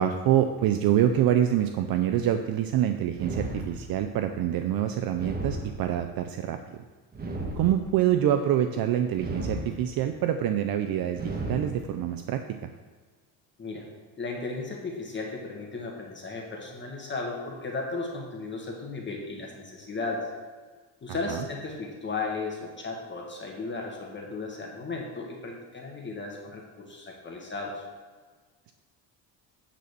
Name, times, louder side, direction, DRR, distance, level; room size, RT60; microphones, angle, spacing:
voice 1, 0.0-6.6 7.6-12.6 21.3-21.4, right 10 dB, 55° right, 7 dB, 0.6 m, -26 dB
sound 1, 3.1-4.2 5.1-6.2 7.1-8.2 9.1-10.2 11.1-12.2, right 1 dB, 20° right, 1.3 m, -35 dB
voice 2, 14.2-20.2 21.0-27.8, left 3 dB, 25° left, 0 dB, 1.5 m, -35 dB
9.4 x 4.2 x 6.8 m, 1.4 s
cardioid pair, 130°, 43 cm